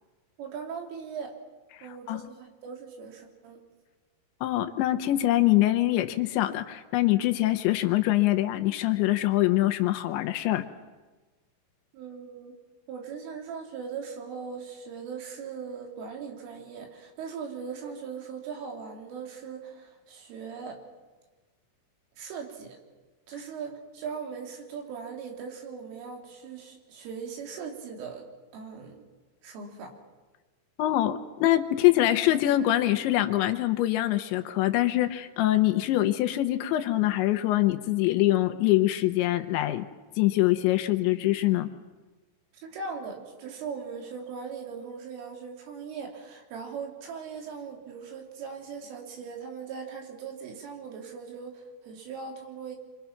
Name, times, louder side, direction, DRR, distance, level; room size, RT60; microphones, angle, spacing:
voice 1, 0.4-1.3 1.8-3.6 11.9-12.6 12.9-20.8 22.2-22.8 23.3-28.3 28.5-29.0 29.4-29.9 42.6-52.8, right 6 dB, 85° right, 2 dB, 5.7 m, -39 dB
voice 2, 1.8-2.2 4.4-10.7 30.8-39.9 40.2-41.7, left 15 dB, 75° left, 9 dB, 3.1 m, -24 dB
27.0 x 24.5 x 5.9 m, 1.3 s
omnidirectional pair, 5.5 m